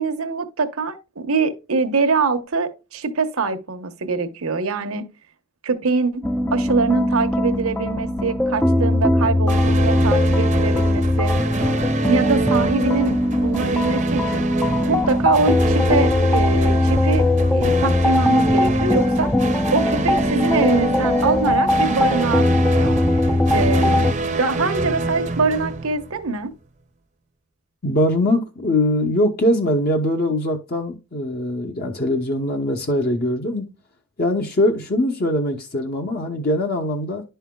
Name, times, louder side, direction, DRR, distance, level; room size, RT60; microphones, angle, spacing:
voice 1, 0.0-5.1 5.6-6.3 6.5-11.3 12.0-14.5 14.9-17.2 17.5-19.3 19.7-23.0 23.5-24.1 24.4-26.5, right 4 dB, 75° right, 1.0 m, -23 dB
sound 1, 6.2-24.1, left 1 dB, 10° left, 0.4 m, -20 dB
sound 2, 9.5-26.5, right 3 dB, 35° right, 0.7 m, -27 dB
voice 2, 27.8-33.6 34.2-37.2, left 1 dB, 45° left, 0.9 m, -22 dB
11.0 x 5.6 x 2.3 m
head